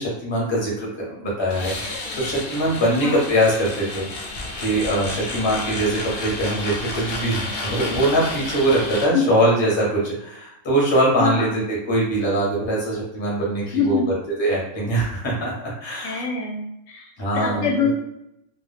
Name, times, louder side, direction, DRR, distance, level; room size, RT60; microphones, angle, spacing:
voice 1, 0.0-4.0 4.6-15.5 15.8-16.2 17.2-17.9, right 1 dB, 25° left, -4 dB, 0.7 m, -22 dB
sound 1, 1.5-9.1, left 2 dB, 60° left, 0.7 m, -31 dB
voice 2, 2.9-3.2 9.1-9.2 11.2-11.6 13.7-14.1 16.0-17.1 17.3-17.9, left 5 dB, 85° left, 1 dB, 1.0 m, -24 dB
2.2 x 2.1 x 3.2 m, 0.81 s
omnidirectional pair, 1.3 m